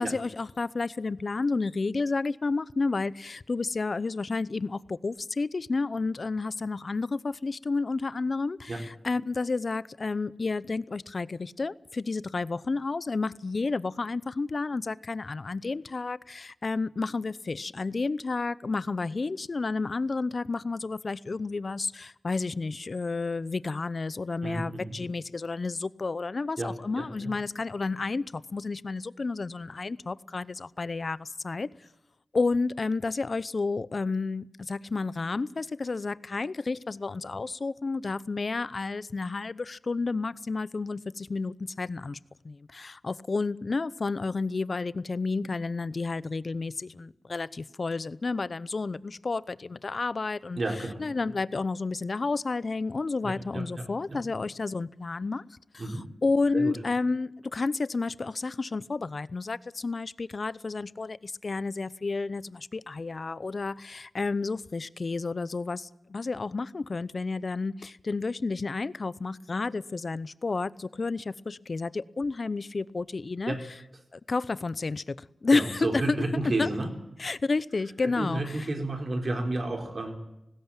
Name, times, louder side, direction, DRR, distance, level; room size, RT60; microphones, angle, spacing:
voice 1, 0.0-31.7 32.3-42.2 42.4-55.4 55.7-56.0 56.2-73.6 74.1-76.2 76.6-76.7 77.2-78.7, left 3 dB, 55° left, 20 dB, 0.8 m, -31 dB
voice 2, 24.4-24.9 26.6-27.3 50.6-51.0 53.2-54.2 55.8-56.1 56.5-56.7 73.5-73.6 75.5-76.9 78.0-80.2, right 2 dB, 55° right, 4 dB, 4.4 m, -32 dB
19.5 x 16.5 x 8.9 m, 0.88 s
cardioid pair, 45°, 0 cm